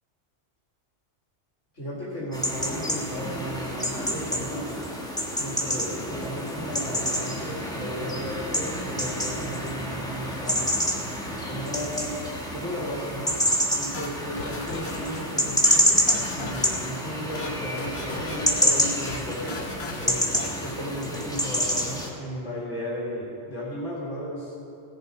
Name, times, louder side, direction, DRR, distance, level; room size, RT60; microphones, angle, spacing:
voice 1, 1.7-4.8 5.3-10.8 11.5-12.2 12.5-15.9 16.3-19.6 20.0-24.6, equal, 80° left, -7 dB, 2.4 m, -35 dB
sound 1, 2.3-22.1, equal, 5° left, 1.2 m, -28 dB
sound 2, 13.9-15.2 15.5-16.9 17.2-17.5 17.8-18.6 18.9-19.2 19.5-20.8, left 3 dB, 60° left, 1.2 m, -38 dB
17.0 x 7.0 x 4.9 m, 2.6 s
omnidirectional pair, 1.2 m